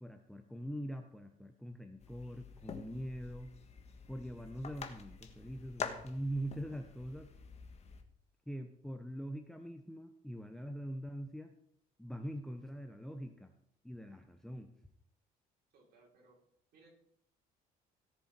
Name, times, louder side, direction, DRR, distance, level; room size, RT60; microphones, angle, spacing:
voice 1, 0.0-3.5 4.1-7.3 8.5-11.5 12.0-13.5 13.8-14.7, equal, ahead, 6 dB, 0.9 m, -43 dB
sound 1, 2.0-8.0, left 5 dB, 40° left, 1.6 m, -47 dB
voice 2, 15.7-16.4 16.7-16.9, right 3 dB, 65° right, -2 dB, 4.7 m, -64 dB
17.5 x 7.0 x 4.6 m, 0.68 s
cardioid pair, 110°, 17 cm